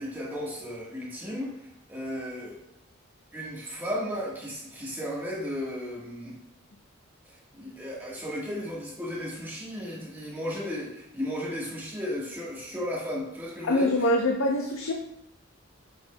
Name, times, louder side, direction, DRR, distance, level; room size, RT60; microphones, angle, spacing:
voice 1, 0.0-2.6 3.3-6.4 7.2-14.1, equal, 10° right, -6 dB, 1.3 m, -35 dB
voice 2, 13.6-14.9, left 1 dB, 80° left, 1 dB, 0.7 m, -24 dB
8.1 x 5.9 x 2.2 m, 0.80 s
head